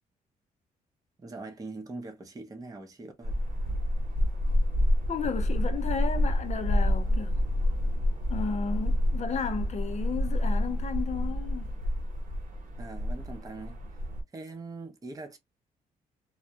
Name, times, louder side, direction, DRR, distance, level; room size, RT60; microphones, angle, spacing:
voice 1, 1.2-3.4 12.8-13.8 14.3-15.4, right 3 dB, 20° right, 0.7 m, -42 dB
sound 1, 3.2-14.2, left 1 dB, 60° right, 1.0 m, -28 dB
voice 2, 5.1-7.4 8.3-11.7, left 6 dB, 45° left, 0.6 m, -33 dB
2.2 x 2.1 x 2.7 m
cardioid pair, 80°, 16 cm